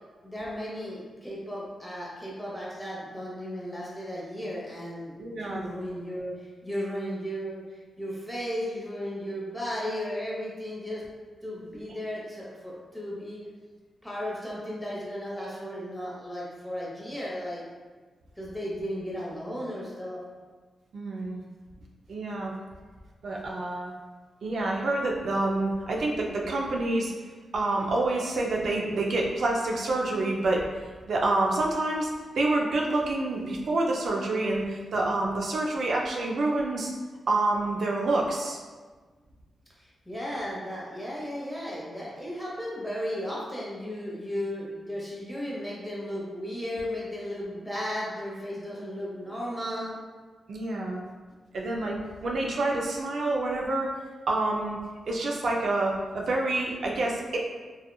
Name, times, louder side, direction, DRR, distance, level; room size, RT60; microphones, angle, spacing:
voice 1, 0.2-11.0 11.4-13.4 14.0-17.6 18.4-20.2 39.8-50.0, equal, 5° left, -6 dB, 0.8 m, -35 dB
voice 2, 5.2-5.7 20.9-21.4 22.1-22.5 23.2-23.9 24.4-27.1 27.5-30.6 31.1-32.1 32.4-36.9 37.3-38.6 50.5-51.0 51.5-53.9 54.3-54.8 55.1-57.4, right 2 dB, 70° right, -1 dB, 0.3 m, -27 dB
2.8 x 2.3 x 2.2 m, 1.4 s
cardioid pair, 85°, 0 cm